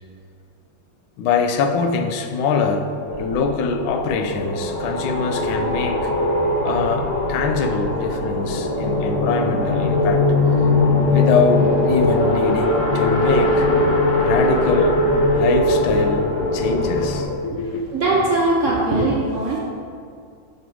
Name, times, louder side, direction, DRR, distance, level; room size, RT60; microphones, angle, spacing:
voice 1, 1.2-2.9 3.2-6.1 6.6-10.3 11.0-13.7 14.2-15.0 15.4-16.3 16.5-17.8 19.0-19.1, left 5 dB, 90° left, 6 dB, 1.4 m, -23 dB
sound 1, 3.1-17.2, left 2 dB, 60° left, 1.4 m, -20 dB
voice 2, 17.9-19.6, right 2 dB, 60° right, -3 dB, 0.8 m, -20 dB
6.0 x 5.4 x 4.5 m, 2.3 s
omnidirectional pair, 2.1 m